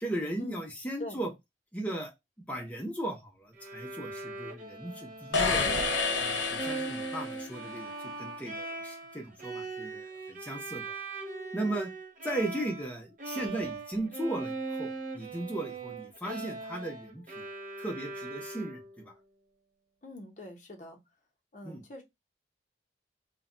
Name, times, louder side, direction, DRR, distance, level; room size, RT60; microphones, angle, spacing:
voice 1, 0.0-1.3 1.7-2.1 2.5-5.7 6.2-10.8 11.5-11.9 12.2-17.5 17.8-18.8 21.6-21.8, right 1 dB, 10° left, 0.6 m, -36 dB
Bowed string instrument, 3.6-12.9 13.2-19.0, right 3 dB, 45° right, 0.5 m, -40 dB
sound 1, 5.3-7.6, left 4 dB, 90° left, 0.7 m, -29 dB
voice 2, 20.0-21.0 21.5-22.0, left 2 dB, 40° left, 0.7 m, -43 dB
2.2 x 2.1 x 3.7 m
head